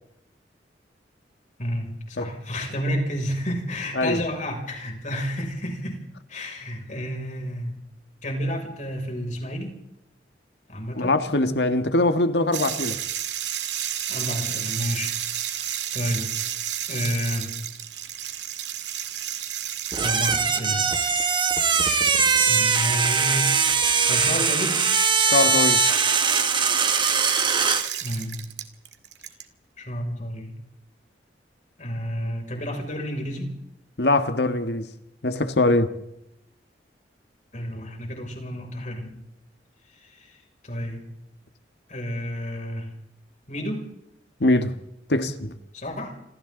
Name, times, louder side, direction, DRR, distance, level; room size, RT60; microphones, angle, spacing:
voice 1, 1.6-6.0 6.3-7.8 8.2-9.8 10.7-11.2 14.1-16.3 16.9-17.6 20.0-20.9 21.7-23.6 24.1-24.8 28.0-28.4 29.8-30.5 31.8-33.5 37.5-39.2 39.9-41.1 41.9-42.9 43.5-43.9 45.7-46.2, equal, 45° left, 6.4 m, -31 dB
voice 2, 11.0-13.0 25.3-25.8 34.0-34.9 35.2-35.9 44.4-44.7 45.1-45.5, left 2 dB, 70° left, 1.6 m, -22 dB
sound 1, 12.5-29.4, right 11 dB, 85° right, 2.1 m, -32 dB
sound 2, 19.9-27.9, right 5 dB, 30° right, 1.8 m, -21 dB
28.0 x 27.0 x 4.0 m
head